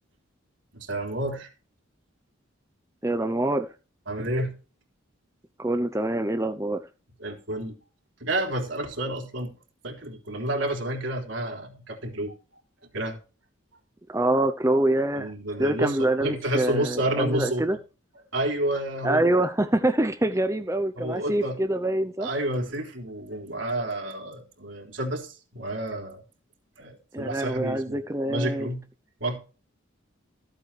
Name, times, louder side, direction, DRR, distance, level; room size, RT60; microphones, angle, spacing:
voice 1, 0.7-1.5 4.1-4.5 7.2-7.7 8.2-9.5 9.8-12.4 12.9-13.2 15.2-17.7 18.3-19.3 21.0-21.6 22.2-26.2 26.8-28.8 29.2-29.4, right 1 dB, 70° right, 3.6 m, -30 dB
voice 2, 3.0-3.7 5.6-6.8 14.1-15.3 15.6-17.8 19.0-22.3 27.1-28.7, right 1 dB, 15° right, 0.6 m, -25 dB
15.0 x 9.0 x 3.3 m
head